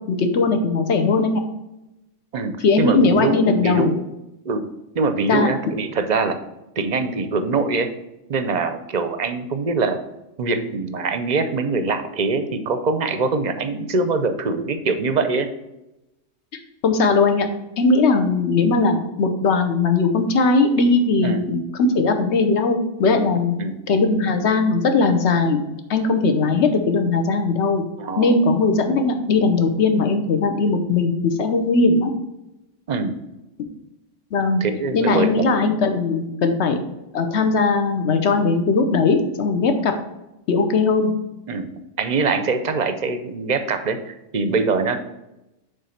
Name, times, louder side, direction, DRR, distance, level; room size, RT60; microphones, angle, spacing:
voice 1, 0.1-1.4 2.6-3.9 5.3-5.5 16.8-17.5 17.8-23.5 23.9-25.6 25.9-27.8 28.2-32.1 34.3-34.6 34.9-36.8 37.1-39.9 40.5-41.1, left 3 dB, 65° left, 6 dB, 1.1 m, -19 dB
voice 2, 2.3-3.4 3.6-4.0 4.4-4.7 4.9-6.4 6.8-7.9 8.3-10.0 10.4-15.5 21.2-21.4 23.6-23.8 28.0-28.3 32.9-33.1 34.6-35.5 41.5-41.7 42.0-45.0, right 4 dB, 45° right, 9 dB, 0.6 m, -23 dB
7.3 x 3.4 x 5.7 m, 0.94 s
omnidirectional pair, 1.3 m